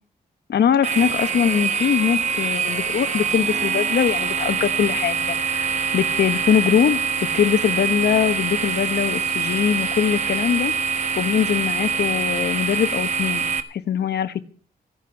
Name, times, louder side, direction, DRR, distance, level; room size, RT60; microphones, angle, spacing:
voice 1, 0.5-7.0 7.3-10.7 11.2-13.4 13.7-14.4, left 9 dB, 80° left, 12 dB, 1.2 m, -22 dB
sound 1, 0.8-13.6, right 5 dB, 45° right, 1.2 m, -24 dB
15.5 x 10.5 x 6.9 m, 0.40 s
wide cardioid pair, 140°, 17 cm